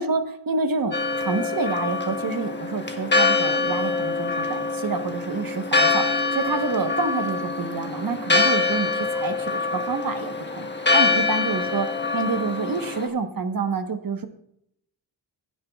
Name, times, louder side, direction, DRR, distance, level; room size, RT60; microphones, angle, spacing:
voice 1, 0.0-10.7 10.9-11.9 12.1-14.3, right 4 dB, 50° right, 7 dB, 1.2 m, -28 dB
Church bell, 0.9-13.1, left 3 dB, 25° left, 1.5 m, -24 dB
15.5 x 10.0 x 2.4 m, 0.74 s
cardioid pair, 80°, 45 cm